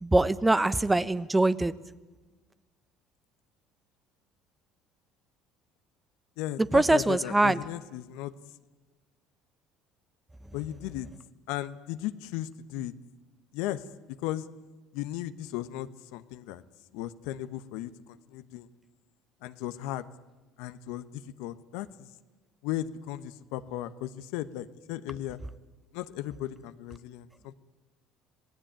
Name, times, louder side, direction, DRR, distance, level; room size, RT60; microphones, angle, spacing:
voice 1, 0.0-1.7 6.7-7.6, right 2 dB, 15° right, 15 dB, 1.1 m, -23 dB
voice 2, 6.4-8.3 10.5-11.1 11.5-12.9 13.5-13.8 14.2-14.5 14.9-16.6 16.9-18.7 19.4-20.1 20.6-22.1 22.6-25.4 25.9-27.5, left 13 dB, 70° left, 12 dB, 1.1 m, -36 dB
26.5 x 18.0 x 8.9 m, 1.2 s
hypercardioid pair, 70°, 0 cm